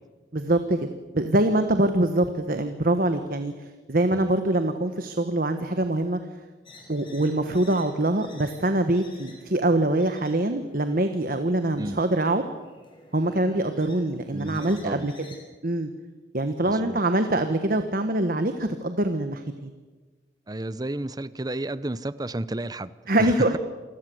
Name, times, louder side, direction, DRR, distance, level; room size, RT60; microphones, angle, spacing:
voice 1, 0.3-0.9 1.1-3.5 3.9-6.2 6.9-12.4 13.1-15.1 15.6-15.9 16.3-19.7 23.1-23.6, right 1 dB, 50° right, 8 dB, 1.4 m, -24 dB
sound 1, 6.6-15.4, left 2 dB, 30° left, 6.0 m, -51 dB
voice 2, 14.3-15.1 16.6-17.0 20.5-22.9 23.2-23.6, right 1 dB, 20° right, 16 dB, 0.8 m, -32 dB
28.0 x 20.5 x 7.9 m, 1.3 s
head